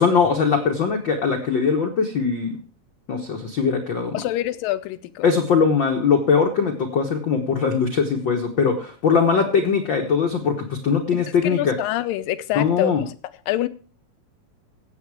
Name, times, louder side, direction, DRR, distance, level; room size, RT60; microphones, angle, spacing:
voice 1, 0.0-2.6 3.1-4.2 5.2-11.7 12.5-13.0, left 5 dB, 65° left, 1.2 m, -21 dB
voice 2, 4.1-5.2 11.1-12.9 13.5-13.7, left 14 dB, 85° left, 2.4 m, -26 dB
16.5 x 7.4 x 4.8 m
omnidirectional pair, 4.0 m